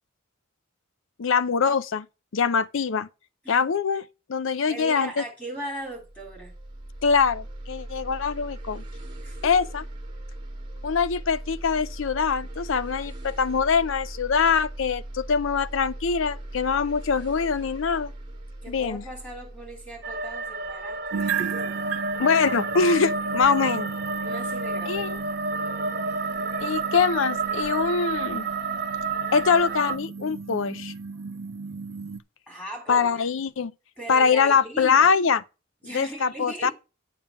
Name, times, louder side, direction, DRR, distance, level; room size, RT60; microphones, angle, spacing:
voice 1, 1.2-2.1 2.3-3.1 3.5-4.0 4.3-5.2 7.0-8.8 9.4-9.8 10.8-18.1 18.7-19.0 22.2-23.9 24.9-25.2 26.6-28.5 29.3-30.9 32.9-33.7 34.1-35.4 35.9-36.7, left 5 dB, 65° left, 0.5 m, -23 dB
voice 2, 4.7-6.5 9.2-9.5 18.6-21.8 24.2-25.2 32.5-33.2 34.0-35.1 35.8-36.7, right 1 dB, 5° left, 3.6 m, -38 dB
sound 1, 5.9-21.3, right 1 dB, 25° right, 1.6 m, -39 dB
sound 2, 20.0-30.0, right 3 dB, 45° right, 1.4 m, -30 dB
sound 3, 21.1-32.2, right 5 dB, 75° right, 0.6 m, -35 dB
8.9 x 5.4 x 5.6 m
head